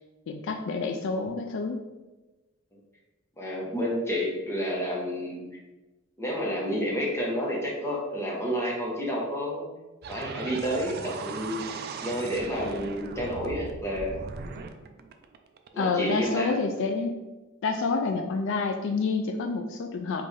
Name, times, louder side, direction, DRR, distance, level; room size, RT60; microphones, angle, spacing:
voice 1, 0.3-1.8 15.8-17.2 17.6-20.3, left 4 dB, 65° left, 5 dB, 0.4 m, -28 dB
voice 2, 3.4-5.4 6.2-9.7 10.1-11.7 12.0-14.1 15.7-16.5, equal, 15° left, -4 dB, 1.0 m, -30 dB
sound 1, 10.0-16.3, right 4 dB, 50° right, 0.3 m, -39 dB
5.3 x 2.6 x 3.3 m, 1.1 s
head